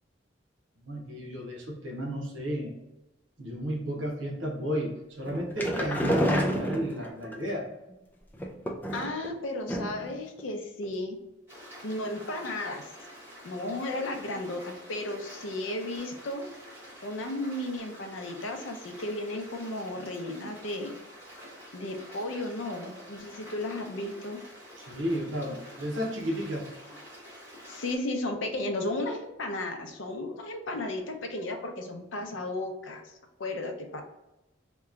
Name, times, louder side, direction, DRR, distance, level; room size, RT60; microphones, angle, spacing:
voice 1, 0.8-2.7 3.4-7.7 24.9-26.7, equal, 75° right, -2 dB, 0.9 m, -33 dB
sound 1, 5.2-7.3 8.3-9.3 9.7-10.1 10.4-10.5 10.8-10.9, equal, 10° left, 0.4 m, -29 dB
voice 2, 8.9-11.2 11.8-12.9 13.4-16.4 17.0-21.0 21.7-24.4 27.7-33.1 33.4-34.0, left 2 dB, 80° left, 4 dB, 0.6 m, -34 dB
Stream, 11.5-28.0, equal, 15° right, 1.2 m, -48 dB
2.9 x 2.2 x 3.6 m, 0.96 s
head